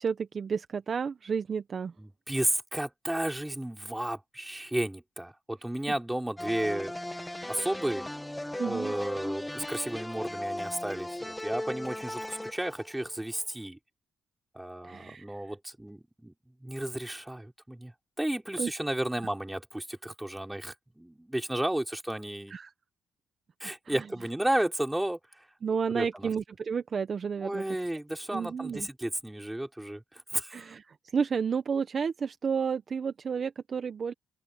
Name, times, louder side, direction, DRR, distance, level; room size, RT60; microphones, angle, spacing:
voice 1, 0.0-1.9 8.6-9.0 14.8-15.4 18.6-18.7 22.5-22.7 23.8-24.1 25.6-27.6 28.3-28.9 30.5-34.1, right 6 dB, 45° right, 1.0 m, -31 dB
voice 2, 2.0-6.9 7.5-8.0 8.6-13.8 14.5-16.3 16.6-17.9 18.2-22.5 23.6-25.2 25.9-26.3 27.4-30.7, right 1 dB, 5° right, 4.7 m, -33 dB
sound 1, 6.4-13.4, left 1 dB, 10° left, 1.4 m, -37 dB
open air
cardioid pair, 90°, 0 cm